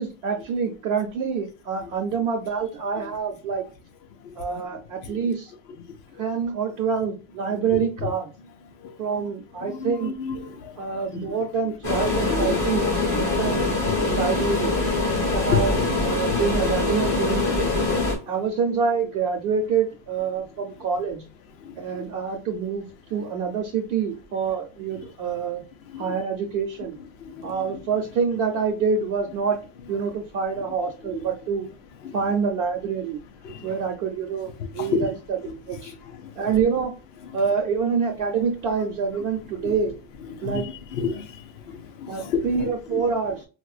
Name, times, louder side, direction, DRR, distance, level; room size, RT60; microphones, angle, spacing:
voice 1, 0.0-3.6 4.4-5.5 6.2-8.3 9.0-10.1 10.8-12.9 13.2-13.6 13.9-14.8 15.3-15.7 16.0-17.7 18.3-21.3 21.8-22.9 23.1-25.6 26.0-27.0 27.4-29.6 29.9-31.7 32.1-33.2 33.6-35.4 35.7-35.9 36.4-36.9 37.3-39.9 40.4-40.7 42.1-43.5, right 6 dB, 70° right, 0.8 m, -26 dB
voice 2, 4.2-4.6 5.0-5.2 7.5-7.7 8.0-8.1 8.8-9.3 9.6-11.3 12.2-12.6 13.1-13.4 13.9-14.0 15.1-15.8 16.3-16.4 21.6-22.1 25.9-26.2 27.2-27.8 31.1-31.3 32.0-32.2 33.4-33.7 34.8-35.1 36.0-36.3 39.6-39.7 40.3-43.0, left 6 dB, 80° left, 0.8 m, -31 dB
sound 1, 11.8-18.1, left 2 dB, 30° left, 1.2 m, -23 dB
4.2 x 2.1 x 2.3 m
omnidirectional pair, 1.1 m